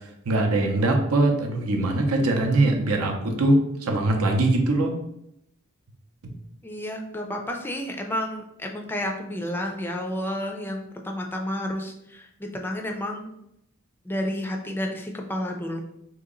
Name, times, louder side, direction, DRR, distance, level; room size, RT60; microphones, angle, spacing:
voice 1, 0.2-4.9, right 2 dB, 90° right, 3 dB, 0.6 m, -22 dB
voice 2, 6.6-13.3 14.0-15.8, left 1 dB, 10° left, 2 dB, 0.3 m, -31 dB
2.8 x 2.8 x 3.7 m, 0.78 s
head